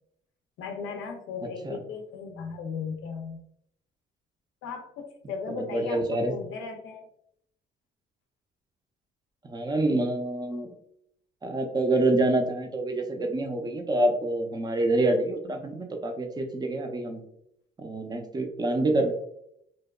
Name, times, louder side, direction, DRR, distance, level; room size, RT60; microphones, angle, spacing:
voice 1, 0.6-3.4 4.6-7.1, left 5 dB, 85° left, 3 dB, 0.4 m, -36 dB
voice 2, 5.5-6.3 9.4-10.7 11.4-17.2 17.8-19.1, right 2 dB, 20° right, 3 dB, 0.5 m, -27 dB
2.8 x 2.1 x 2.2 m, 0.72 s
cardioid pair, 90°, 20 cm